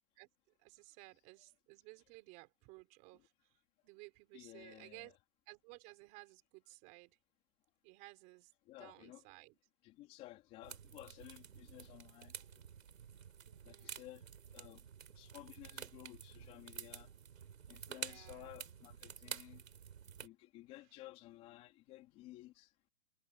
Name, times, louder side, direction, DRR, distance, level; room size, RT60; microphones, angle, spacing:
voice 1, 0.6-3.3 3.8-5.2 5.5-7.2 7.8-8.5 8.8-9.6 13.5-14.1 17.9-18.6, right 25 dB, 20° right, 5.4 m, -57 dB
voice 2, 4.3-5.1 8.6-9.2 9.8-12.6 13.6-14.2 14.5-14.9 15.1-17.1 17.7-19.6 20.2-22.7, left 16 dB, 15° left, 3.4 m, -55 dB
sound 1, 10.6-20.3, right 8 dB, 65° right, 4.1 m, -50 dB
hypercardioid pair, 175°, 42 cm